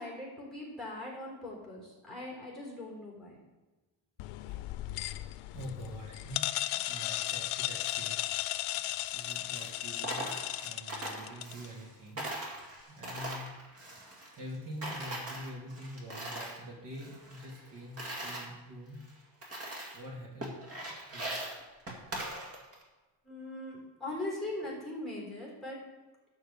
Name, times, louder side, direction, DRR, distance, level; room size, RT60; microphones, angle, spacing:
voice 1, 0.0-3.4 23.2-25.8, left 1 dB, ahead, -4 dB, 3.9 m, -40 dB
sound 1, 4.2-11.7, left 16 dB, 90° left, 0.6 m, -36 dB
voice 2, 5.5-6.6 6.8-8.3 9.1-10.3 10.6-12.3 12.9-13.5 14.4-19.0 19.9-21.4, equal, 55° right, -3 dB, 2.8 m, -45 dB
Coin (dropping), 9.1-11.9 12.2-14.6 14.8-16.6 16.9-18.5 19.0-19.1 19.4-20.1 20.4-22.8, right 1 dB, 30° right, 2.2 m, -41 dB
12.0 x 4.7 x 6.9 m, 1.2 s
cardioid pair, 155°, 49 cm